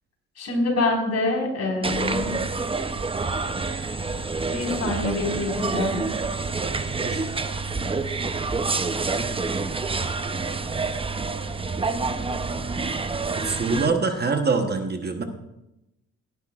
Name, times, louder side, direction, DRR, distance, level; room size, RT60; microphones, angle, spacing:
voice 1, 0.4-2.3 4.5-6.0, left 3 dB, 55° left, -1 dB, 4.8 m, -26 dB
sound 1, 1.8-13.9, right 4 dB, 20° right, 0.7 m, -27 dB
voice 2, 6.6-7.3 13.4-15.2, right 4 dB, 35° right, 5 dB, 1.1 m, -25 dB
16.5 x 10.5 x 2.4 m, 0.91 s
cardioid pair, 90°, 30 cm